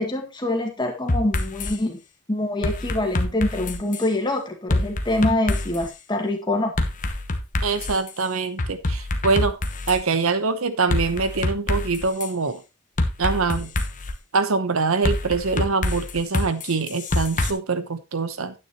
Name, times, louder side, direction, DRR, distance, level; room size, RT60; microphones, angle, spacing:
voice 1, 0.0-2.0 2.3-6.7, left 1 dB, 20° left, 2.0 m, -25 dB
sound 1, 1.1-1.8 2.6-4.1 4.7-5.9 6.8-8.1 8.6-10.0 10.9-12.3 13.0-14.2 15.0-17.5, left 2 dB, 35° left, 1.1 m, -26 dB
voice 2, 7.6-9.6 9.9-12.6 13.2-13.7 14.3-18.5, right 4 dB, 70° right, 0.9 m, -24 dB
9.7 x 8.9 x 3.0 m
head